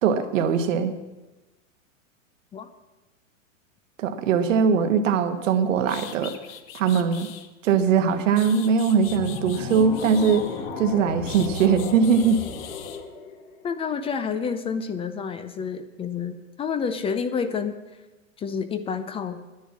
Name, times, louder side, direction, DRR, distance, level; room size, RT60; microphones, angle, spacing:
voice 1, 0.0-0.9 4.0-6.3 6.7-7.3 7.6-10.5 10.8-12.4, right 6 dB, 70° right, 8 dB, 1.3 m, -21 dB
sound 1, 5.5-5.6 5.9-7.5 8.1-10.7 11.3-13.0, left 11 dB, 45° left, 1.2 m, -42 dB
sound 2, 9.0-14.2, left 4 dB, 70° left, 2.1 m, -35 dB
voice 2, 13.6-17.8 18.4-19.4, left 6 dB, 15° left, 11 dB, 0.5 m, -29 dB
10.0 x 10.0 x 7.4 m, 1.1 s
hypercardioid pair, 125°, 40 cm